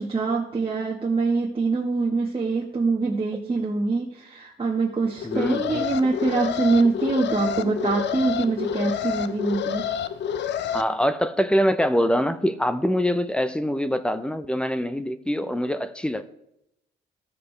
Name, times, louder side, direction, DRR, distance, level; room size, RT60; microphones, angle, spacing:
voice 1, 0.0-9.9, right 3 dB, 25° right, 1.2 m, -24 dB
Alarm, 5.2-10.8, left 8 dB, 65° left, 0.6 m, -28 dB
voice 2, 5.2-5.9 10.7-16.2, equal, 5° left, 0.6 m, -24 dB
14.5 x 6.8 x 3.3 m
cardioid pair, 90°, 20 cm